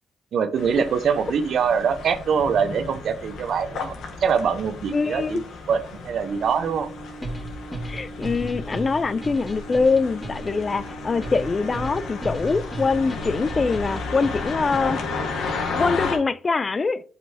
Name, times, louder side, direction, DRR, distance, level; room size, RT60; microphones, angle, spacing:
voice 1, 0.3-5.4 5.7-6.9, right 6 dB, 65° right, 0.8 m, -23 dB
sound 1, 0.6-16.2, left 4 dB, 75° left, 1.6 m, -34 dB
voice 2, 4.9-5.4 7.8-15.0 15.7-17.0, left 4 dB, 30° left, 0.4 m, -23 dB
sound 2, 6.3-16.3, right 4 dB, 10° right, 0.7 m, -42 dB
sound 3, 7.2-15.1, equal, 10° left, 2.4 m, -35 dB
7.9 x 5.3 x 2.8 m
cardioid pair, 90°, 0 cm